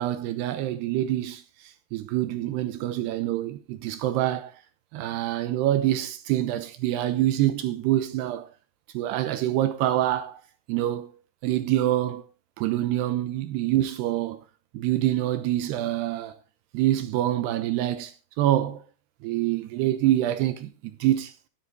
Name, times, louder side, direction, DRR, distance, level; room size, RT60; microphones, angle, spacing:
voice 1, 0.0-4.5 4.9-8.5 8.9-10.4 10.7-11.1 11.4-12.2 12.6-14.4 14.7-16.3 16.7-18.8 19.2-20.7 21.0-21.3, right 13 dB, 80° right, 3.0 m, -26 dB
13.0 x 13.0 x 3.9 m
omnidirectional pair, 4.7 m